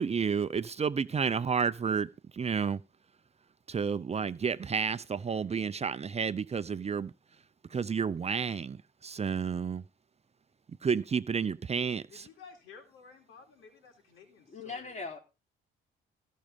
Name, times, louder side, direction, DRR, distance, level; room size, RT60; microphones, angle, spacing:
voice 1, 0.0-2.8 3.7-7.1 7.7-9.8 10.8-12.3, right 6 dB, 30° right, 0.7 m, -31 dB
voice 2, 12.1-15.0, left 5 dB, 90° left, 4.2 m, -54 dB
voice 3, 14.5-15.2, left 4 dB, 35° left, 4.2 m, -40 dB
16.0 x 6.3 x 5.3 m
cardioid pair, 90°, 20 cm